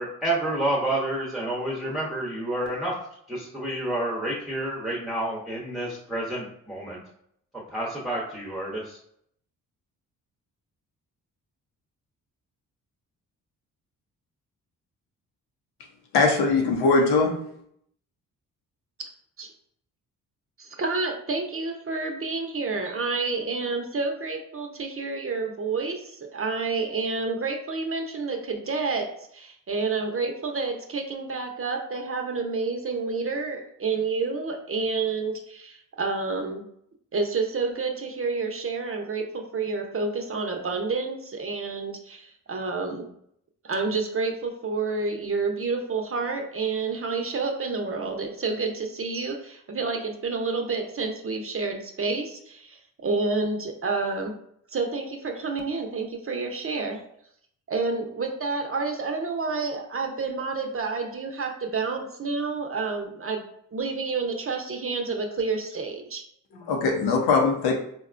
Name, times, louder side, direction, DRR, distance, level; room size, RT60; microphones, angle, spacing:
voice 1, 0.0-2.9 3.3-7.0 7.7-9.0, right 1 dB, ahead, -6 dB, 0.9 m, -29 dB
voice 2, 16.1-17.3 66.5-67.7, left 4 dB, 85° left, 1 dB, 0.8 m, -21 dB
voice 3, 20.6-29.1 29.3-36.6 37.1-43.1 43.6-54.3 54.7-57.0 57.7-63.4 63.7-66.2, right 4 dB, 35° right, 2 dB, 0.7 m, -29 dB
4.0 x 2.2 x 2.5 m, 0.70 s
supercardioid pair, 55°, 37 cm